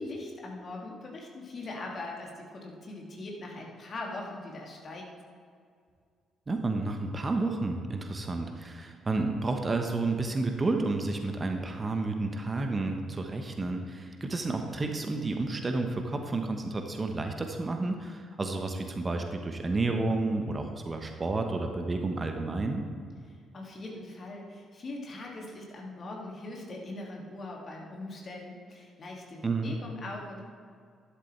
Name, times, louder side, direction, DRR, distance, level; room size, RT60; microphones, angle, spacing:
voice 1, 0.0-5.1 23.5-30.4, left 2 dB, 45° left, -1 dB, 2.4 m, -41 dB
voice 2, 6.5-22.8 29.4-29.7, right 3 dB, 30° right, 4 dB, 1.1 m, -31 dB
11.5 x 11.5 x 3.3 m, 2.2 s
figure-of-eight pair, 45°, 0 cm